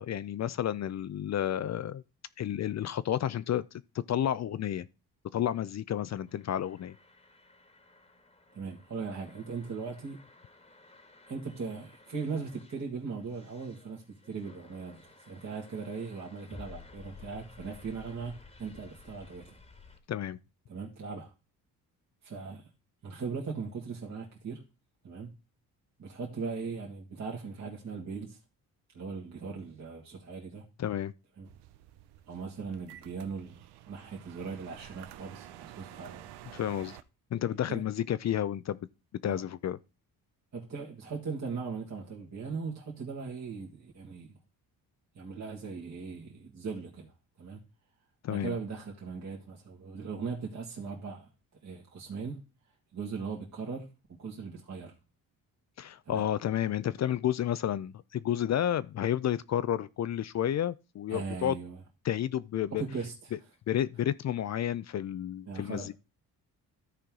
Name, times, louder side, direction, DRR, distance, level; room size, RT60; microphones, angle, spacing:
voice 1, 0.0-2.0 2.4-3.6 4.1-4.9 5.3-7.0 20.1-20.4 30.8-31.1 36.5-37.0 37.3-38.8 39.2-39.8 48.2-48.5 55.8-61.5 62.0-62.8 63.7-65.9, left 10 dB, 45° left, 0.5 m, -31 dB
sound 1, 6.3-20.0, left 4 dB, 15° left, 1.5 m, -55 dB
voice 2, 8.5-10.2 11.3-19.6 20.7-21.3 22.2-22.6 23.0-24.6 25.0-25.4 26.0-28.4 28.9-30.7 31.4-31.5 32.3-36.3 37.7-37.9 39.3-39.4 40.5-44.3 45.2-47.1 47.4-47.6 48.3-51.3 51.6-52.4 52.9-53.9 54.2-54.9 56.1-56.2 61.1-61.8 62.7-63.3 65.5-65.9, right 5 dB, 45° right, 2.0 m, -39 dB
sound 2, 31.5-37.0, right 13 dB, 85° right, 0.7 m, -50 dB
13.5 x 4.5 x 3.7 m
cardioid pair, 80°, 38 cm